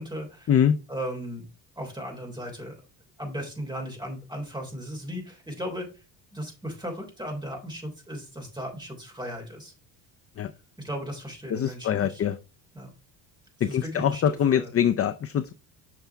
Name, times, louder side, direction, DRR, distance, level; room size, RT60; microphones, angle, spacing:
voice 1, 0.0-0.5 0.9-1.5 1.7-2.8 3.2-6.0 6.3-9.7 10.8-12.2 12.7-12.9 13.7-14.7, equal, 10° right, 3.3 m, -36 dB
voice 2, 11.5-12.4 13.6-15.5, left 9 dB, 30° left, 0.5 m, -24 dB
7.0 x 6.0 x 3.3 m
cardioid pair, 130°, 46 cm